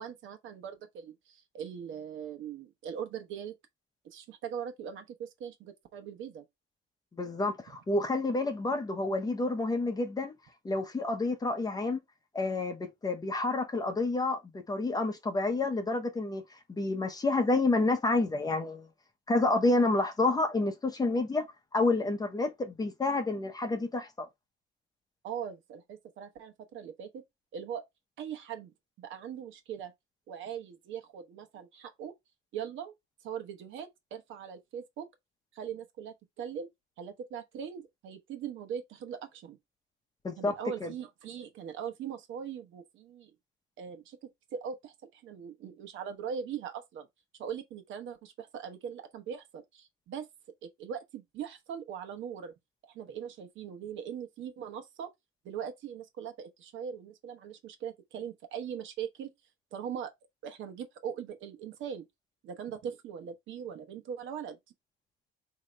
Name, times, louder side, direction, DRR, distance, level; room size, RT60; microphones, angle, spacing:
voice 1, 0.0-3.5 4.0-6.4 25.2-27.2 27.5-27.8 28.2-28.7 29.0-29.9 30.3-32.1 32.5-32.9 33.2-35.1 35.5-36.7 37.0-39.6 40.4-43.3 43.8-47.1 47.4-50.3 50.6-52.5 52.8-55.1 55.4-59.3 59.7-60.1 60.4-62.0 62.4-64.6, right 8 dB, 75° right, 1.0 m, -40 dB
voice 2, 7.2-10.3 10.6-12.0 12.3-14.4 14.7-16.4 16.7-18.9 19.3-21.5 21.7-24.3 40.2-40.5 40.8-40.9, left 2 dB, 20° left, 0.8 m, -29 dB
5.0 x 2.8 x 3.2 m
cardioid pair, 150°, 20 cm